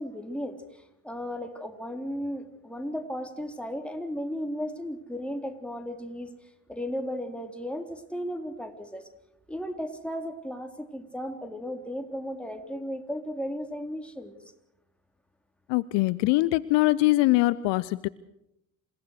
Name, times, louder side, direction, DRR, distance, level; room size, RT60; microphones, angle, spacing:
voice 1, 0.0-6.3 6.7-9.1 9.5-14.4, equal, ahead, 5 dB, 3.9 m, -35 dB
voice 2, 15.7-18.1, left 19 dB, 60° left, 19 dB, 0.8 m, -23 dB
28.0 x 17.5 x 6.5 m, 0.83 s
figure-of-eight pair, 50°, 48 cm